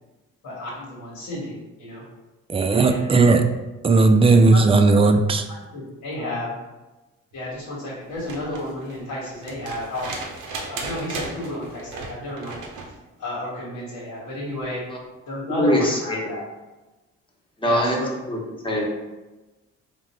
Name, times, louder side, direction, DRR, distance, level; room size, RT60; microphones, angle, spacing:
voice 1, 0.4-2.0 2.7-3.2 4.5-4.6 5.0-5.1 5.7-6.6 7.3-10.1 10.7-12.6 13.2-14.8 15.3-16.4 17.6-18.2, left 1 dB, 85° left, -6 dB, 1.3 m, -32 dB
voice 2, 2.5-3.4 3.8-5.4, right 3 dB, 20° right, 6 dB, 0.4 m, -16 dB
sound 1, 8.1-13.0 14.6-14.7, right 3 dB, 85° right, 0.8 m, -36 dB
voice 3, 15.6-16.3 17.6-18.4 18.6-18.8, equal, 15° left, -3 dB, 1.0 m, -23 dB
3.4 x 2.5 x 4.2 m, 1.1 s
cardioid pair, 90°, 30 cm